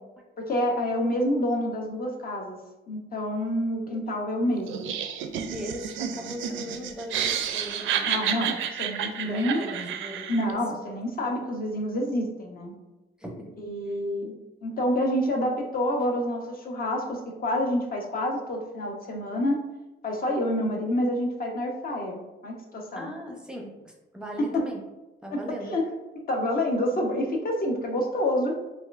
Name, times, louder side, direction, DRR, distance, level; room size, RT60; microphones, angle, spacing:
voice 1, 0.4-2.6 2.9-4.9 8.1-9.6 10.3-12.7 13.6-14.3 14.6-19.6 20.0-23.1 24.4-24.7 25.3-25.9 26.2-28.6, left 1 dB, 45° left, 1 dB, 0.7 m, -28 dB
Laughter, 4.7-10.5, right 8 dB, 80° right, 0.4 m, -30 dB
voice 2, 5.5-8.1 8.9-10.6 11.3-11.4 13.2-13.6 23.0-24.8 25.2-25.7, equal, 5° right, -1 dB, 0.6 m, -39 dB
4.1 x 2.3 x 2.4 m, 1.0 s
cardioid pair, 90°, 20 cm